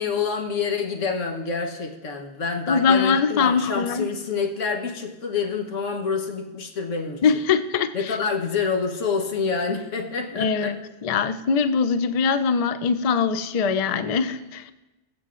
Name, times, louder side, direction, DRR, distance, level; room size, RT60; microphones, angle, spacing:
voice 1, 0.0-7.2 7.9-10.7, left 5 dB, 90° left, 3 dB, 1.3 m, -27 dB
voice 2, 2.7-4.1 7.2-8.2 10.3-14.7, left 5 dB, 65° left, 10 dB, 0.3 m, -22 dB
21.5 x 7.7 x 2.5 m, 1.1 s
omnidirectional pair, 1.2 m